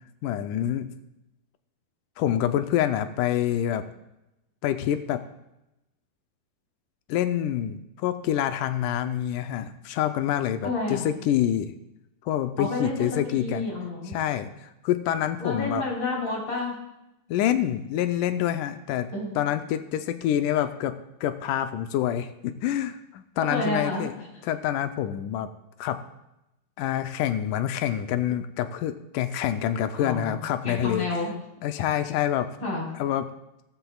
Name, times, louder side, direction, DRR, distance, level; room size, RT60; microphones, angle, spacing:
voice 1, 0.2-0.9 2.2-3.8 4.6-5.2 7.1-11.7 12.2-13.6 14.1-15.8 17.3-19.1 19.4-24.1 24.4-25.5 25.8-26.0 26.8-31.1 31.6-32.5 33.0-33.3, left 11 dB, 85° left, 8 dB, 1.8 m, -27 dB
voice 2, 10.6-11.1 12.6-14.1 15.4-16.7 19.1-19.4 23.4-24.1 30.0-31.3 32.6-32.9, left 2 dB, 35° left, -3 dB, 5.0 m, -30 dB
19.0 x 15.0 x 2.4 m, 0.90 s
omnidirectional pair, 4.4 m